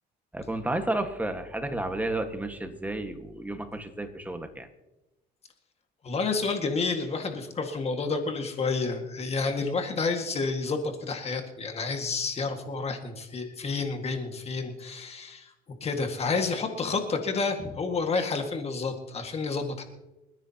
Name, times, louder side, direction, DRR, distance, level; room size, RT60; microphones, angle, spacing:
voice 1, 0.3-4.7, right 2 dB, 10° right, 6 dB, 1.6 m, -32 dB
voice 2, 6.0-15.5 15.8-19.8, left 4 dB, 35° left, 5 dB, 1.9 m, -30 dB
28.5 x 10.5 x 2.9 m, 0.97 s
cardioid pair, 110°, 17 cm